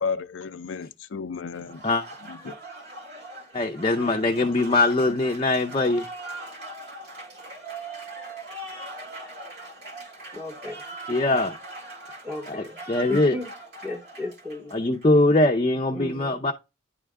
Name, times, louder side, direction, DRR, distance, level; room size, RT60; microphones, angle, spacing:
voice 1, 0.0-1.8 2.2-2.6, left 5 dB, 90° left, 0.5 m, -33 dB
Applause, 1.5-15.2, right 2 dB, 60° right, 1.9 m, -41 dB
voice 2, 3.5-6.1 11.1-11.6 12.5-13.4 14.7-16.5, left 2 dB, 30° left, 0.6 m, -22 dB
voice 3, 10.3-10.8 12.2-12.8 13.1-13.5 13.8-14.7 15.9-16.4, left 2 dB, 5° right, 0.8 m, -35 dB
10.0 x 3.4 x 3.6 m
head